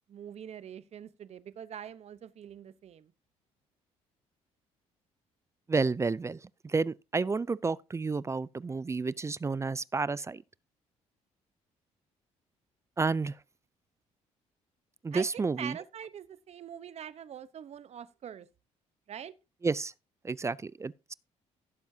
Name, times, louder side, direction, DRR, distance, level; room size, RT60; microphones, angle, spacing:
voice 1, 0.1-3.1 15.1-18.5 19.1-19.3, right 9 dB, 55° right, 1.0 m, -44 dB
voice 2, 5.7-10.4 13.0-13.4 15.0-15.8 19.6-19.9 20.2-21.1, right 4 dB, 20° right, 0.4 m, -31 dB
16.0 x 7.2 x 2.8 m
supercardioid pair, 75°, 13 cm